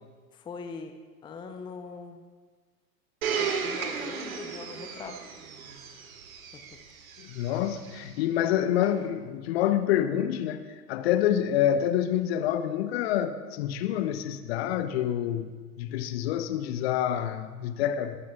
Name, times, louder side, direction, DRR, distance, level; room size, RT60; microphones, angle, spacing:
voice 1, 0.3-0.9 1.2-2.2 3.3-5.2 6.5-6.8, left 4 dB, 10° left, 6 dB, 0.6 m, -42 dB
Domestic sounds home sounds, 3.2-8.1 8.8-8.9, right 6 dB, 60° right, 1.8 m, -35 dB
voice 2, 7.2-18.2, left 10 dB, 40° left, 11 dB, 0.8 m, -27 dB
21.0 x 15.5 x 2.4 m, 1.5 s
figure-of-eight pair, 100°, 47 cm